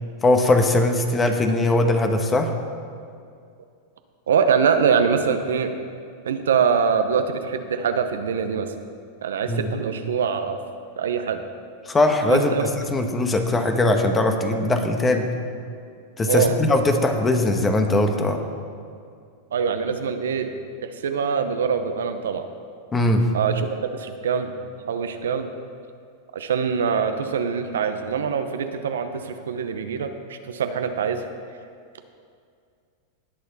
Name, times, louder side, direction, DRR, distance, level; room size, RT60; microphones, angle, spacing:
voice 1, 0.2-2.5 9.5-9.7 11.9-15.3 16.2-18.4 22.9-23.3, left 2 dB, 20° left, 5 dB, 1.3 m, -20 dB
voice 2, 4.3-5.7 6.2-8.7 9.2-10.6 11.0-11.4 12.3-12.7 16.3-16.6 19.5-20.5 20.8-22.5 23.3-24.5 24.8-25.5 26.3-31.2, right 6 dB, 85° right, 8 dB, 0.8 m, -24 dB
19.0 x 6.6 x 4.1 m, 2.2 s
hypercardioid pair, 110°, 0 cm